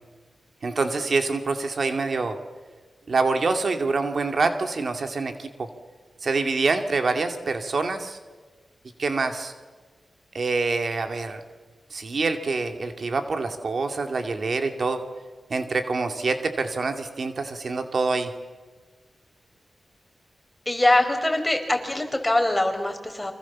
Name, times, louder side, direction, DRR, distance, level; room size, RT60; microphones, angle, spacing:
voice 1, 0.6-2.4 3.1-5.7 6.2-8.2 9.0-9.5 10.3-11.4 11.9-15.0 15.5-18.3, right 3 dB, 65° right, 6 dB, 2.5 m, -26 dB
voice 2, 20.6-23.3, left 1 dB, 15° left, 5 dB, 5.1 m, -23 dB
29.5 x 25.5 x 7.4 m, 1.4 s
cardioid pair, 60°, 0 cm